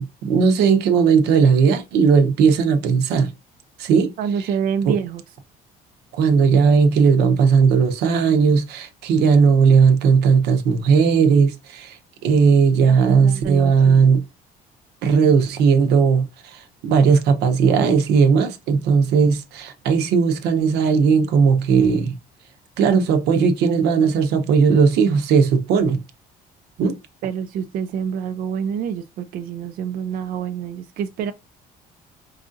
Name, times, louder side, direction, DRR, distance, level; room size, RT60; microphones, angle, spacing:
voice 1, 0.0-3.3 3.8-4.5 4.8-5.0 6.1-14.2 15.0-22.1 22.8-26.0 26.8-27.0, right 5 dB, 80° right, 0.7 m, -17 dB
voice 2, 4.2-5.2 12.9-14.1 27.2-31.3, right 7 dB, 60° right, 0.4 m, -27 dB
4.7 x 2.5 x 2.5 m
cardioid pair, 110°, 17 cm